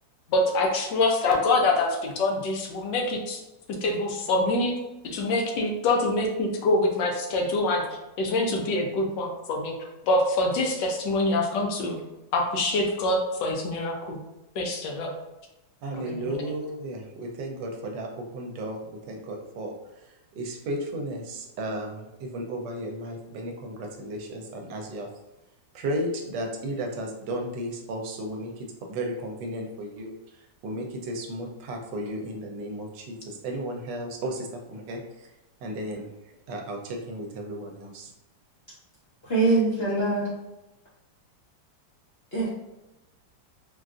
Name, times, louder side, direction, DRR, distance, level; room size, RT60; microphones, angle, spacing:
voice 1, 0.3-3.4 3.8-4.7 5.0-7.8 8.2-9.7 10.0-12.0 12.3-14.2 14.6-15.1 16.1-16.4, left 2 dB, 80° left, 2 dB, 1.2 m, -25 dB
voice 2, 15.8-18.8 19.1-19.7 20.4-25.1 25.7-30.1 30.6-35.0 35.6-36.1 36.5-38.1, right 1 dB, 80° right, 2 dB, 1.2 m, -34 dB
voice 3, 39.2-40.2 42.3-42.5, right 3 dB, 55° left, -8 dB, 0.7 m, -23 dB
3.9 x 2.3 x 2.3 m, 0.96 s
omnidirectional pair, 2.0 m